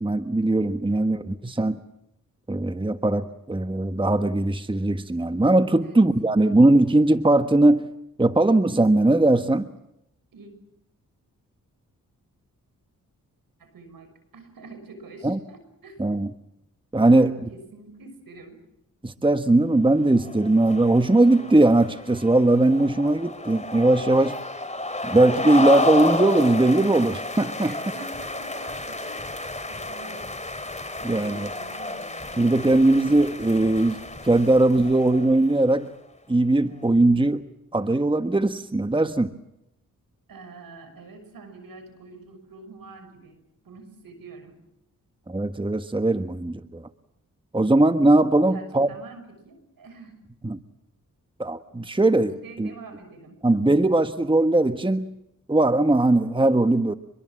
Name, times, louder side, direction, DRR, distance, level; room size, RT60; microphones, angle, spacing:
voice 1, 0.0-1.8 2.5-7.9 8.2-9.7 15.2-15.4 16.0-16.3 16.9-17.3 19.0-24.4 25.0-27.8 31.0-31.5 32.4-35.9 36.3-37.4 37.7-39.3 45.3-46.8 47.5-48.9 50.4-50.6 51.4-52.7 53.4-55.1 55.5-56.9, right 2 dB, 15° right, 10 dB, 1.3 m, -20 dB
voice 2, 13.6-16.1 17.0-18.6 27.6-30.3 31.0-32.5 40.3-43.4 43.6-44.5 48.5-50.1 52.3-53.4, right 3 dB, 75° right, 9 dB, 6.4 m, -45 dB
sound 1, 20.0-35.7, left 2 dB, 20° left, 3.1 m, -31 dB
26.0 x 22.5 x 7.6 m, 0.82 s
cardioid pair, 55°, 34 cm